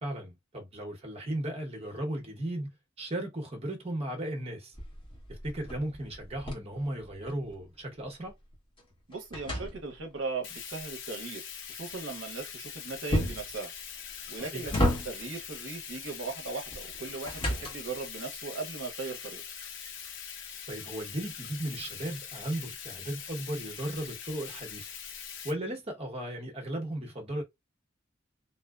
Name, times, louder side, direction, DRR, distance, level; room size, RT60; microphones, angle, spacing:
voice 1, 0.0-2.7 3.0-4.7 5.3-8.3 14.5-14.7 20.7-24.9 25.4-27.4, right 1 dB, 30° right, 0.8 m, -36 dB
sound 1, 4.7-7.6 8.0-10.3 13.1-13.6 14.2-15.4 16.7-18.1, equal, 25° left, 1.0 m, -33 dB
voice 2, 9.1-11.4 11.7-13.7 14.3-14.7 15.0-19.4, right 4 dB, 70° right, 0.6 m, -38 dB
Bathtub (filling or washing), 10.4-25.5, left 8 dB, 65° left, 0.6 m, -43 dB
2.7 x 2.0 x 2.2 m
head